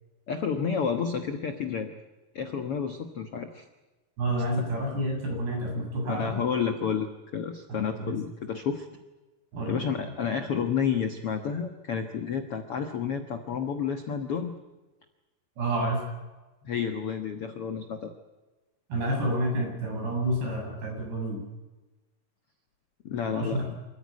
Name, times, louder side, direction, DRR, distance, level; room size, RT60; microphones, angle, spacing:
voice 1, 0.3-1.9 2.3-3.7 4.6-4.7 6.1-8.9 9.7-14.5 16.6-18.1 23.0-23.7, left 6 dB, 75° left, 6 dB, 1.3 m, -30 dB
voice 2, 4.2-6.4 7.7-8.1 9.5-9.8 15.6-16.0 18.9-21.4 23.3-23.6, right 1 dB, 75° right, 1 dB, 10.0 m, -29 dB
28.0 x 14.5 x 9.6 m, 1.2 s
omnidirectional pair, 4.8 m